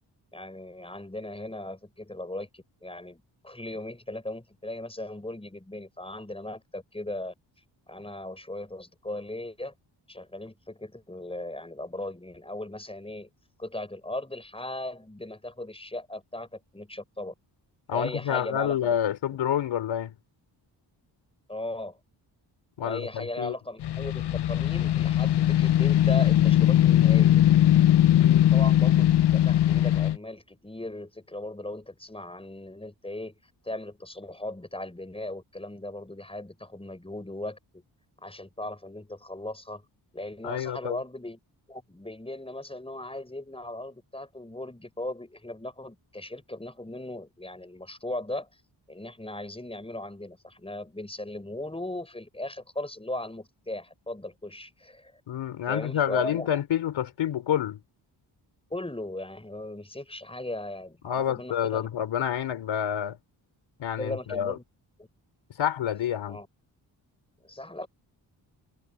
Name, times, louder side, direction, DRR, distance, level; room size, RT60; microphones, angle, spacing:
voice 1, 0.3-7.3 7.9-9.7 10.1-13.3 13.6-17.3 17.9-18.9 21.5-22.0 22.8-27.4 28.5-33.3 33.6-37.8 38.2-39.8 40.1-41.4 41.7-48.5 48.9-55.1 55.7-56.5 58.7-61.9 64.0-64.6 66.3-66.5 67.4-67.9, left 1 dB, 10° left, 7.1 m, -38 dB
voice 2, 17.9-20.2 22.8-23.5 28.1-28.5 40.4-41.0 55.3-57.8 61.0-63.2 63.8-64.6 65.6-66.4, left 9 dB, 90° left, 4.1 m, -28 dB
sound 1, 23.8-30.2, left 12 dB, 60° left, 0.7 m, -20 dB
cardioid pair, 65°, 45 cm